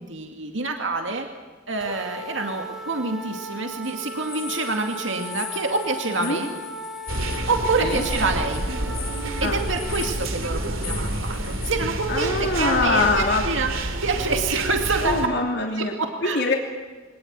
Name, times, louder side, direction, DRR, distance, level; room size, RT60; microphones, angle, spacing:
voice 1, 0.1-1.3 1.7-6.5 7.5-8.7 9.4-15.3 15.8-16.4, right 3 dB, 65° right, 4 dB, 2.4 m, -27 dB
sound 1, 1.8-10.3, equal, 5° right, 3.5 m, -37 dB
sound 2, 3.8-11.7, left 10 dB, 75° left, 6.0 m, -40 dB
sound 3, 7.1-15.3, right 1 dB, 85° right, 2.8 m, -29 dB
voice 2, 12.1-13.4 15.0-15.9 16.2-16.5, left 3 dB, 55° left, 2 dB, 3.0 m, -23 dB
24.0 x 19.0 x 9.5 m, 1.3 s
head